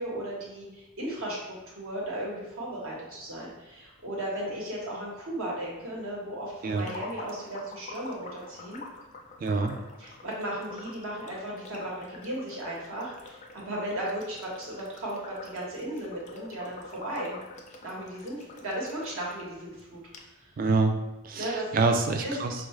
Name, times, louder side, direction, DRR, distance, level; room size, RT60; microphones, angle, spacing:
voice 1, 0.0-8.8 10.0-17.5 17.8-20.0 20.4-20.6 21.3-21.8 22.2-22.3, right 1 dB, 80° right, -4 dB, 1.2 m, -36 dB
sound 1, 6.7-19.4 19.8-19.9 20.1-20.2, left 3 dB, 35° left, 0.4 m, -46 dB
voice 2, 9.4-9.8 20.6-20.9 21.2-22.5, right 3 dB, 40° right, 5 dB, 0.3 m, -26 dB
4.6 x 2.4 x 3.1 m, 1.0 s
head